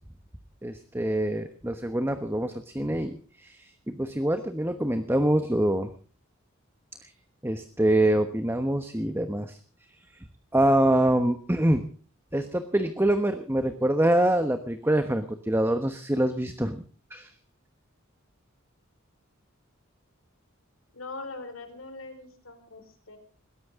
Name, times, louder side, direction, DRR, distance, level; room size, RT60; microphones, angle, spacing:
voice 1, 0.6-5.9 7.0-7.1 7.4-9.6 10.5-11.8 12.3-16.8 17.1-17.3, right 1 dB, 10° right, 8 dB, 1.1 m, -25 dB
voice 2, 20.9-23.2, left 3 dB, 80° left, 8 dB, 4.6 m, -41 dB
21.0 x 17.5 x 3.7 m, 0.38 s
head